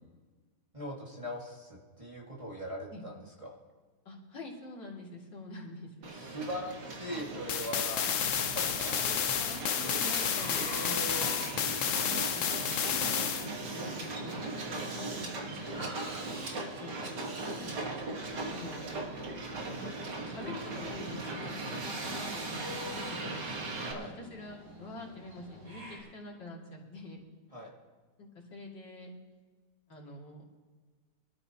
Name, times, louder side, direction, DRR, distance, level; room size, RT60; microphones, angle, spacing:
voice 1, 0.7-3.6 6.1-8.2 8.5-9.5 10.5-11.3 23.8-24.2 27.5-27.7, equal, 20° right, -4 dB, 2.0 m, -41 dB
voice 2, 4.0-5.9 8.0-8.1 9.0-11.9 12.3-12.9 13.7-16.4 16.8-17.2 17.6-18.1 18.4-23.5 23.9-27.2 28.2-29.1 29.9-30.4, left 2 dB, 75° left, -3 dB, 3.3 m, -46 dB
Hiss, 6.0-23.9, right 2 dB, 70° right, 2.3 m, -38 dB
sound 1, 7.5-13.5, left 8 dB, 60° left, 0.8 m, -31 dB
sound 2, 8.3-26.0, right 1 dB, 85° right, 5.6 m, -51 dB
24.0 x 13.0 x 2.9 m, 1.4 s
omnidirectional pair, 2.0 m